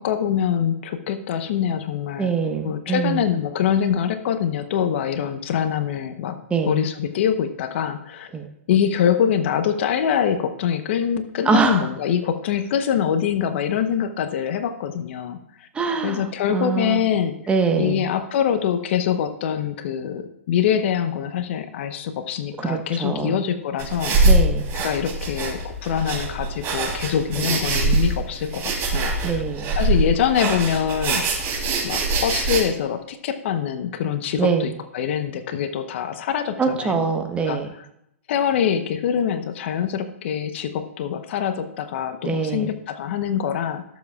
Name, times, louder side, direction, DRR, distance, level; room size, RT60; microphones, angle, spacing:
voice 1, 0.0-2.3 2.6-6.4 6.6-8.3 8.7-15.7 16.0-17.3 17.8-24.2 24.7-29.4 29.8-31.2 31.8-37.0 37.5-37.6 38.3-43.8, left 8 dB, 55° left, 10 dB, 0.9 m, -24 dB
voice 2, 2.2-3.2 6.5-6.7 8.3-8.5 11.4-11.9 15.7-17.0 17.5-18.0 22.6-23.4 24.2-24.6 27.4-27.5 29.2-29.7 34.4-34.7 36.6-37.7 42.2-42.7, right 5 dB, 15° right, 4 dB, 1.2 m, -23 dB
sound 1, 23.8-32.6, right 2 dB, 30° right, 3.3 m, -23 dB
17.5 x 7.4 x 2.4 m, 0.79 s
hypercardioid pair, 115°, 8 cm